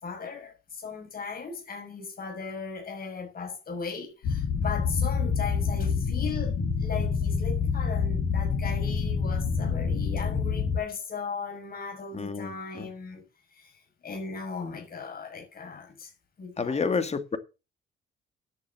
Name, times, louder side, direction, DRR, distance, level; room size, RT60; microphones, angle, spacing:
voice 1, 0.0-16.1 16.4-16.8, left 5 dB, 50° left, 6.5 m, -37 dB
sound 1, 4.2-10.8, left 5 dB, 85° left, 6.5 m, -27 dB
voice 2, 12.1-12.9 16.6-17.4, left 5 dB, 35° left, 2.1 m, -29 dB
10.5 x 7.2 x 7.4 m
cardioid pair, 90°, 20 cm